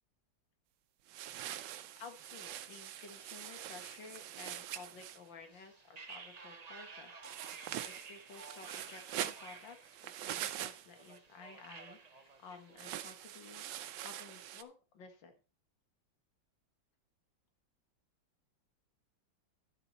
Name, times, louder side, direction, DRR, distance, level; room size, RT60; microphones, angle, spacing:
sound 1, 1.1-5.2 7.2-11.2 12.8-14.6, right 11 dB, 75° right, 1.3 m, -44 dB
voice 1, 2.0-13.6 14.0-15.3, left 5 dB, 75° left, 6 dB, 2.3 m, -54 dB
sound 2, 2.2-12.9, right 4 dB, 45° right, 0.5 m, -55 dB
11.0 x 7.0 x 4.2 m, 0.33 s
omnidirectional pair, 2.0 m